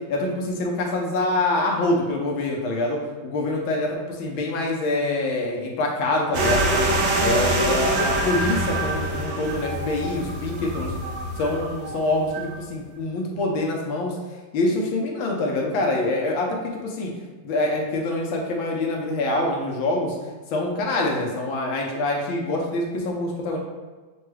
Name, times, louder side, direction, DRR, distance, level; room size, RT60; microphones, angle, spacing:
voice 1, 0.1-6.9 7.2-10.9 11.4-14.2 14.5-17.1 17.4-20.2 20.5-23.6, left 2 dB, 75° left, -1 dB, 1.5 m, -25 dB
sound 1, 6.3-12.5, right 1 dB, 70° right, 1.3 m, -25 dB
6.2 x 2.3 x 3.2 m, 1.3 s
omnidirectional pair, 2.2 m